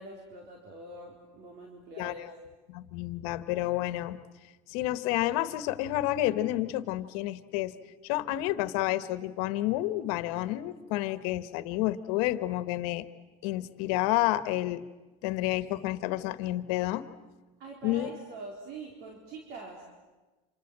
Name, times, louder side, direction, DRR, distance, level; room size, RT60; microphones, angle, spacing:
voice 1, 0.0-2.3 17.6-19.8, right 2 dB, 60° right, 1 dB, 4.1 m, -44 dB
voice 2, 2.0-2.3 2.7-4.2 4.7-7.7 8.0-13.1 13.4-14.8 15.2-17.1 17.8-18.1, left 15 dB, 75° left, 13 dB, 1.4 m, -30 dB
28.0 x 26.5 x 7.7 m, 1.2 s
supercardioid pair, 130°, 19 cm